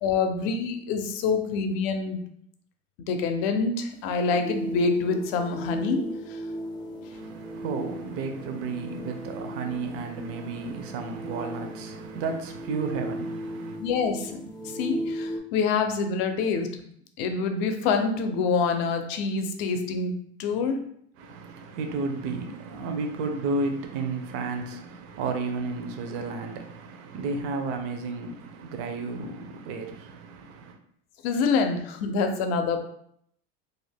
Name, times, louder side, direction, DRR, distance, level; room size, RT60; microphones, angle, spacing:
voice 1, 0.0-2.2 3.0-6.0 6.3-6.4 13.8-16.7 17.2-20.8 31.2-32.9, left 4 dB, 65° left, 0.6 m, -26 dB
sound 1, 3.9-15.4, right 1 dB, 15° left, 0.4 m, -37 dB
voice 2, 7.1-13.8 21.2-30.8, right 4 dB, 50° right, 0.5 m, -32 dB
2.5 x 2.1 x 3.3 m
supercardioid pair, 120°, 31 cm